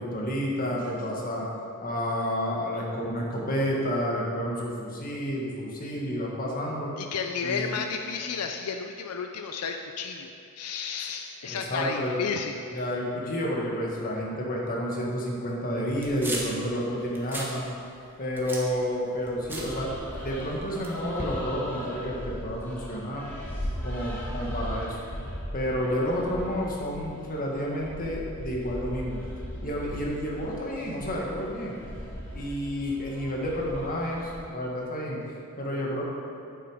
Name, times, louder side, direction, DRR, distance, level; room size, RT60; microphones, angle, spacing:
voice 1, 0.0-1.5 1.8-6.9 7.4-7.7 11.4-12.2 12.7-17.6 18.2-19.9 20.2-23.3 23.8-25.0 25.5-29.2 29.6-31.8 32.3-35.2 35.6-36.0, equal, 40° left, -2 dB, 1.6 m, -30 dB
voice 2, 7.0-10.3 10.6-12.6, left 5 dB, 85° left, 5 dB, 0.5 m, -32 dB
sound 1, 15.9-16.6 17.0-17.5 17.9-20.4 20.8-21.4, right 1 dB, 10° right, 1.3 m, -37 dB
sound 2, 19.5-34.4, equal, 10° left, 2.2 m, -38 dB
9.1 x 7.6 x 5.0 m, 2.5 s
head